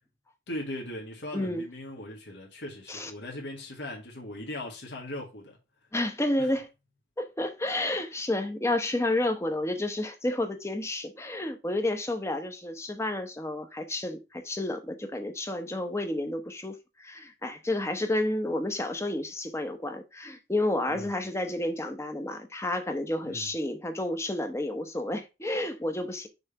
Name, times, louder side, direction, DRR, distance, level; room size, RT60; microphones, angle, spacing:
voice 1, 0.5-5.6 6.4-6.5 20.9-21.2 23.2-23.5, left 1 dB, 65° left, 1.9 m, -39 dB
voice 2, 1.3-1.6 2.9-3.1 5.9-6.7 7.2-26.3, left 1 dB, 15° left, 0.9 m, -30 dB
6.4 x 3.5 x 5.6 m
head